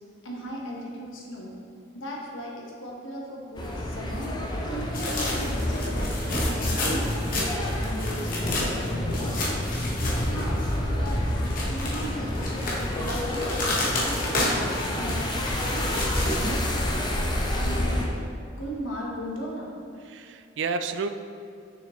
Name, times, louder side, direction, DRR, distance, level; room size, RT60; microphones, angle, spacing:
voice 1, 0.2-1.6 1.9-4.3 4.6-6.1 6.6-9.7 10.2-12.5 13.0-17.0 17.5-18.1 18.6-19.7, equal, 85° left, -3 dB, 1.3 m, -37 dB
sound 1, 3.5-18.1, left 1 dB, 20° left, 0.6 m, -29 dB
sound 2, 4.9-10.7 11.1-16.5, left 1 dB, 45° left, 1.2 m, -31 dB
voice 2, 6.5-6.8 20.1-21.1, right 4 dB, 70° right, 9 dB, 0.4 m, -31 dB
6.6 x 6.1 x 3.2 m, 2.4 s
head